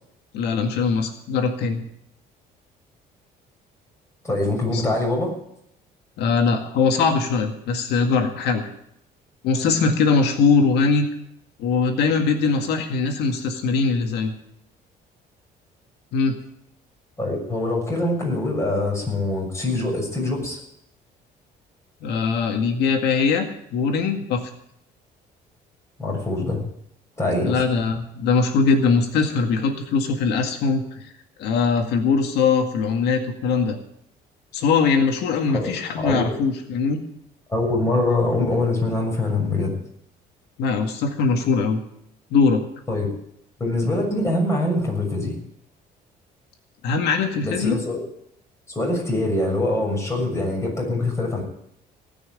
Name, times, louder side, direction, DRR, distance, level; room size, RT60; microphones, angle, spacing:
voice 1, 0.3-1.8 4.7-4.8 6.2-8.7 9.4-11.1 11.6-14.3 16.1-16.4 22.0-24.4 27.4-31.1 31.4-33.8 34.5-37.0 40.6-41.8 42.3-42.6 46.8-47.8, left 5 dB, 80° left, 4 dB, 2.0 m, -21 dB
voice 2, 4.2-5.3 17.2-20.6 26.0-26.6 27.2-27.6 35.5-36.3 37.5-39.7 42.9-43.1 43.6-45.3 47.4-48.0 48.7-51.4, left 2 dB, 15° left, -1 dB, 6.8 m, -24 dB
18.5 x 6.3 x 9.0 m, 0.74 s
cardioid pair, 110°, 17 cm